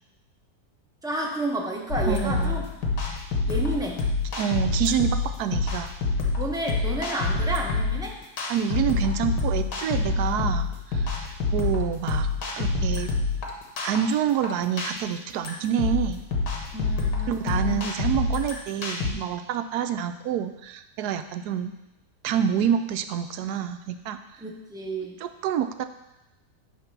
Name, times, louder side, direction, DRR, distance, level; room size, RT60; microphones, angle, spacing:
voice 1, 1.0-2.6 3.5-4.0 6.4-8.2 16.7-17.8 24.4-25.2, right 2 dB, 5° right, -1 dB, 0.7 m, -31 dB
sound 1, 1.9-19.1, left 3 dB, 85° left, 1.8 m, -27 dB
voice 2, 2.1-2.7 4.4-5.9 8.5-12.3 12.6-13.1 13.8-16.2 17.3-21.7 22.2-24.2 25.2-25.8, right 9 dB, 75° right, 9 dB, 1.1 m, -27 dB
9.7 x 3.6 x 6.0 m, 0.96 s
omnidirectional pair, 1.7 m